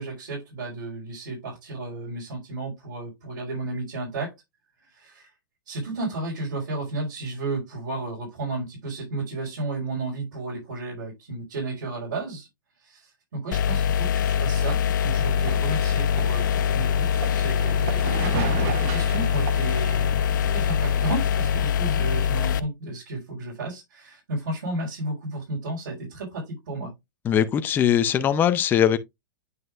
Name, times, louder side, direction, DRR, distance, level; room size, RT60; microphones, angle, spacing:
voice 1, 0.0-4.3 4.8-5.3 5.7-12.5 12.8-20.0 20.4-26.9, right 2 dB, 80° right, 4.4 m, -33 dB
sound 1, 13.5-22.6, left 8 dB, 65° left, 0.6 m, -23 dB
sound 2, 15.1-21.7, right 7 dB, 45° right, 1.0 m, -35 dB
voice 2, 27.3-29.0, left 9 dB, 20° left, 0.6 m, -21 dB
9.3 x 5.5 x 2.4 m
hypercardioid pair, 140°, 11 cm